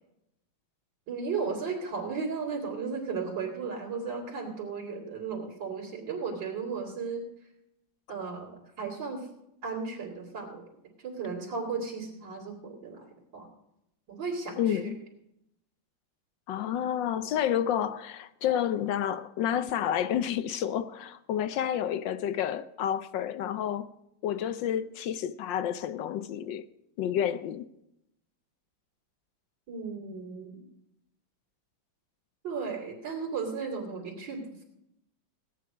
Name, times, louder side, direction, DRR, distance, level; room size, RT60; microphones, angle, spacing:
voice 1, 1.1-7.2 8.1-9.3 9.6-10.7 11.0-13.1 13.3-13.5 14.1-14.9 29.7-30.6 32.4-34.4, right 5 dB, 60° right, 3.5 m, -35 dB
voice 2, 14.6-15.0 16.5-23.9 24.2-26.6 27.0-27.7, left 10 dB, 70° left, 1.2 m, -30 dB
17.5 x 10.0 x 4.9 m
omnidirectional pair, 2.2 m